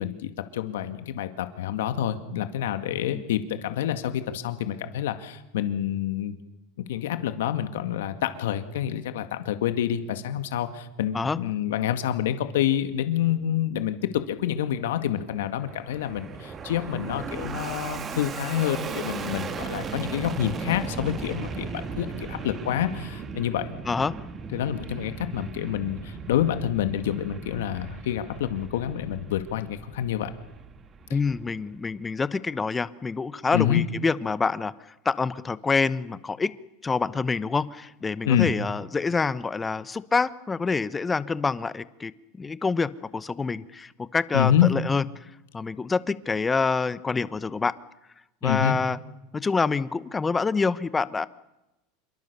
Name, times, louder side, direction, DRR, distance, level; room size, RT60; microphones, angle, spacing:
voice 1, 0.0-6.4 6.9-14.0 14.3-23.7 24.5-30.3 33.5-33.8 38.2-38.5 44.3-44.7 48.4-48.8, left 11 dB, 90° left, 9 dB, 2.0 m, -27 dB
Fixed-wing aircraft airplane, 15.1-31.8, right 5 dB, 25° right, 1.8 m, -37 dB
voice 2, 31.1-34.7 35.0-36.5 36.8-45.0 45.5-47.8 48.4-49.0 49.3-51.3, left 4 dB, 15° left, 16 dB, 1.0 m, -26 dB
27.5 x 24.0 x 6.9 m, 0.96 s
supercardioid pair, 135°, 0 cm